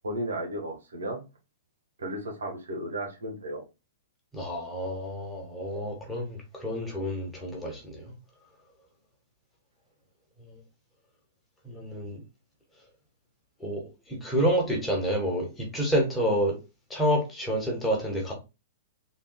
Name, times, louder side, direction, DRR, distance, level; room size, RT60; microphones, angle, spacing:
voice 1, 0.0-1.2 2.0-3.6, right 1 dB, 70° right, 1.5 m, -34 dB
voice 2, 4.3-8.1 10.4-10.6 11.6-12.2 13.6-16.6 16.9-18.3, equal, 10° left, 1.6 m, -29 dB
3.9 x 3.5 x 2.3 m
figure-of-eight pair, 110°, 0 cm